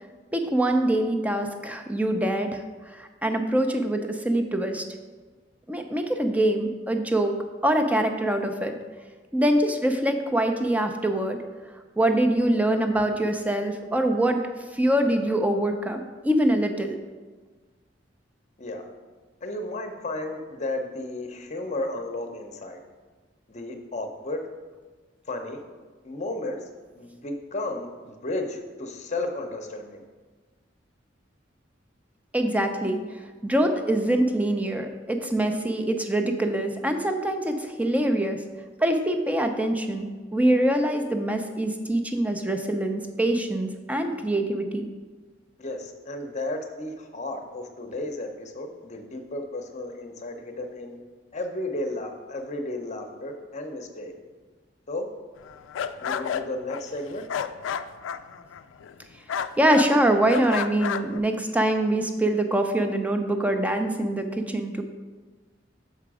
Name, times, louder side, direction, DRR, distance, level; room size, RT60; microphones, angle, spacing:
voice 1, 0.3-4.8 5.7-7.3 7.6-8.7 9.3-11.4 12.0-14.4 14.7-17.0 32.3-33.0 33.4-38.4 38.8-44.9 59.6-64.8, right 1 dB, 10° right, 5 dB, 0.5 m, -24 dB
voice 2, 19.4-22.8 23.5-24.4 25.3-25.6 26.0-26.6 27.0-30.1 45.6-51.0 51.3-54.1 54.9-55.1 56.0-57.3, left 2 dB, 40° left, 5 dB, 0.8 m, -33 dB
sound 1, 55.4-59.0 59.3-59.9 60.3-61.2, left 7 dB, 85° left, 0.3 m, -31 dB
6.7 x 5.0 x 4.8 m, 1.4 s
head